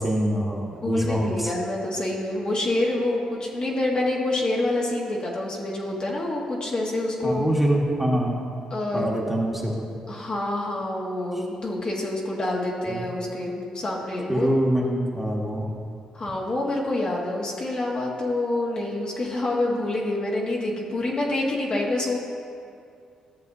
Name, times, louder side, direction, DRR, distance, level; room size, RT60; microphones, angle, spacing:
voice 1, 0.0-1.5 7.2-8.4 8.9-9.7 12.9-13.0 14.3-15.7, right 1 dB, 10° right, -2 dB, 1.4 m, -24 dB
voice 2, 0.8-7.4 8.7-9.2 10.1-14.5 16.1-22.2, left 2 dB, 45° left, -3 dB, 1.5 m, -27 dB
13.5 x 6.8 x 2.7 m, 2.3 s
cardioid pair, 70°, 2 cm